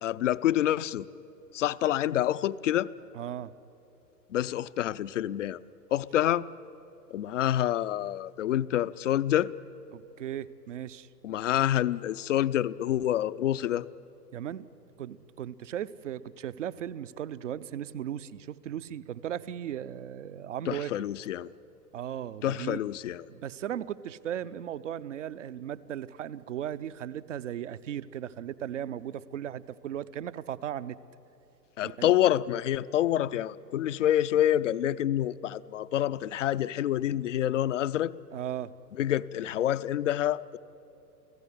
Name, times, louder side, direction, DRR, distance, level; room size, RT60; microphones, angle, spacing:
voice 1, 0.0-1.1 1.5-2.9 4.3-5.6 5.9-6.5 7.1-9.5 11.2-13.9 20.7-21.5 22.4-23.3 31.8-38.1 39.0-40.6, left 12 dB, 50° left, 16 dB, 0.6 m, -27 dB
voice 2, 3.1-3.5 9.9-11.1 14.3-14.7 15.0-20.9 21.9-22.8 23.3-31.0 31.8-32.1 38.3-38.7, right 10 dB, 50° right, 14 dB, 0.8 m, -37 dB
29.0 x 17.0 x 10.0 m, 2.9 s
figure-of-eight pair, 110°, 50 cm